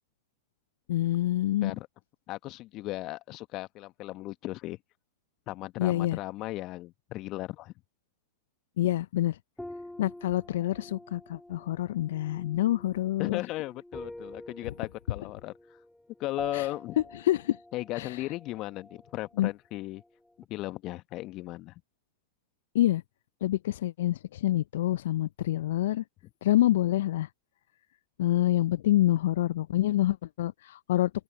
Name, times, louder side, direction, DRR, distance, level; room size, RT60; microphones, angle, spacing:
voice 1, 0.9-1.7 5.8-6.2 8.8-9.4 10.0-13.4 16.5-16.7 17.2-17.6 18.0-18.2 19.4-19.5 22.7-23.0 23.4-26.0 26.4-27.3 28.2-31.1, left 14 dB, 65° left, 0.5 m, -27 dB
voice 2, 2.3-4.8 5.5-7.7 8.8-8.9 13.2-15.5 16.2-17.0 17.7-20.0 20.5-21.8, left 18 dB, 40° left, 1.4 m, -36 dB
sound 1, 9.6-19.5 19.7-20.4, left 1 dB, 5° left, 4.5 m, -47 dB
open air
figure-of-eight pair, 95°, 0 cm